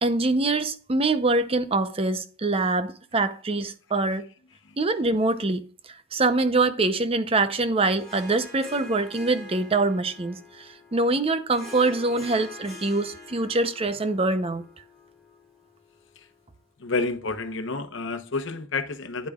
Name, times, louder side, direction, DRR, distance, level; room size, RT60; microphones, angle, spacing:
voice 1, 0.0-4.3 4.8-5.7 6.1-14.6, right 2 dB, 30° right, 0.6 m, -24 dB
Harp, 7.9-16.5, left 2 dB, 5° left, 3.7 m, -45 dB
voice 2, 16.8-19.3, left 3 dB, 70° left, 0.9 m, -29 dB
9.6 x 8.6 x 2.4 m
head